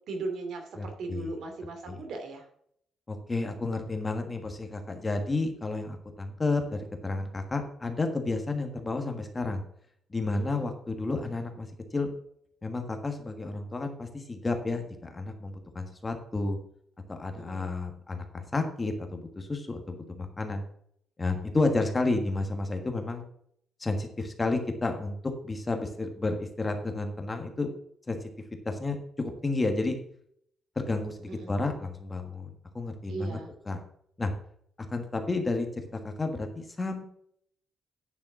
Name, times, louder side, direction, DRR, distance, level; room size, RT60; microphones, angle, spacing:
voice 1, 0.1-2.4 10.5-10.7 17.3-17.7 31.3-31.6 33.1-33.5, right 3 dB, 65° right, 4 dB, 2.7 m, -38 dB
voice 2, 0.8-1.3 1.9-2.0 3.1-9.6 10.1-12.1 12.6-16.6 17.1-20.6 21.2-23.2 23.8-27.7 28.1-28.2 28.6-30.0 30.7-33.4 33.6-33.8 34.2-34.3 34.9-37.0, left 3 dB, 20° left, 5 dB, 1.4 m, -31 dB
9.6 x 6.9 x 6.0 m, 0.67 s
cardioid pair, 155°, 0 cm